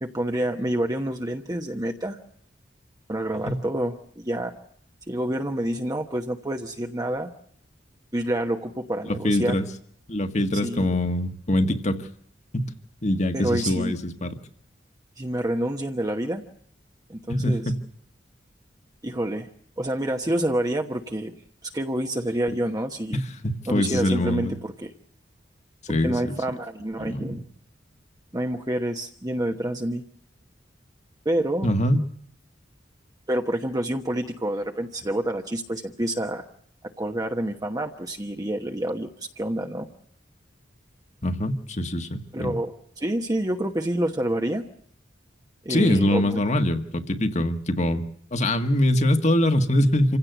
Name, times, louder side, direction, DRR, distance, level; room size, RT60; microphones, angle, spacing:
voice 1, 0.0-2.2 3.1-4.5 5.1-7.3 8.1-9.6 10.6-10.9 13.3-14.0 15.2-16.4 17.1-17.6 19.0-19.5 19.8-21.3 21.6-23.2 23.7-24.9 26.0-27.4 28.3-30.0 31.2-31.7 33.3-36.4 36.8-39.1 39.4-39.9 42.3-44.6 45.6-46.4, right 1 dB, 20° right, 3 dB, 1.2 m, -28 dB
voice 2, 9.1-9.6 10.1-12.1 12.5-12.7 13.0-14.3 17.3-17.8 23.1-24.5 25.9-26.4 27.0-27.4 31.6-32.0 41.2-42.6 45.7-48.0 48.3-50.2, left 1 dB, 40° left, 7 dB, 1.8 m, -23 dB
27.0 x 16.5 x 8.1 m, 0.66 s
head